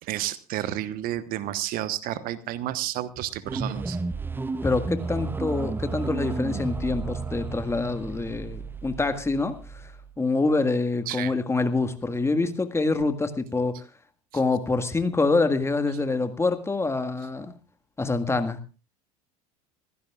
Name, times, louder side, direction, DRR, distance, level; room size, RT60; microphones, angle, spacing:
voice 1, 0.0-4.0 11.1-11.3, right 13 dB, 50° right, 14 dB, 1.2 m, -31 dB
sound 1, 3.4-10.1, right 3 dB, 10° right, 0.7 m, -32 dB
voice 2, 4.6-9.9 10.2-13.9 14.3-17.5 18.0-18.6, left 3 dB, 15° left, 8 dB, 1.7 m, -26 dB
26.5 x 15.5 x 2.4 m, 0.32 s
hypercardioid pair, 75°, 19 cm